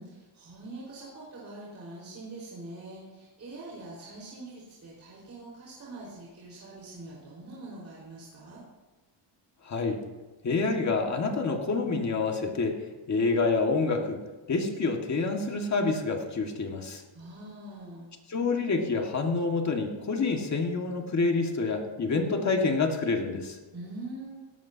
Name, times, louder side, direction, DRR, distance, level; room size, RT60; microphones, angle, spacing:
voice 1, 0.0-8.6 17.1-18.1 23.7-24.4, right 2 dB, 40° right, -7 dB, 4.9 m, -44 dB
voice 2, 9.6-10.0 10.4-12.8 13.1-14.2 14.5-17.0 18.3-23.6, left 4 dB, 40° left, 2 dB, 2.0 m, -27 dB
18.5 x 17.5 x 2.9 m, 1.2 s
cardioid pair, 150°, 44 cm